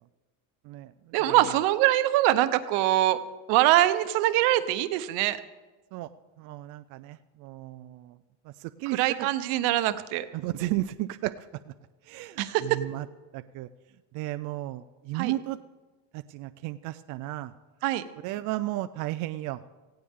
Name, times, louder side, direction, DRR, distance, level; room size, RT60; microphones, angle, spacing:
voice 1, 1.1-3.2 3.5-5.4 8.9-10.3 12.4-12.8 15.1-15.3 17.8-18.0, right 15 dB, 70° right, 11 dB, 1.1 m, -23 dB
voice 2, 6.4-8.2 8.6-9.3 10.3-11.5 12.1-13.1 13.3-13.7 14.1-15.6 16.1-17.5 18.2-19.7, right 16 dB, 45° right, 11 dB, 0.4 m, -34 dB
18.0 x 16.0 x 3.7 m, 1.2 s
cardioid pair, 175°, 43 cm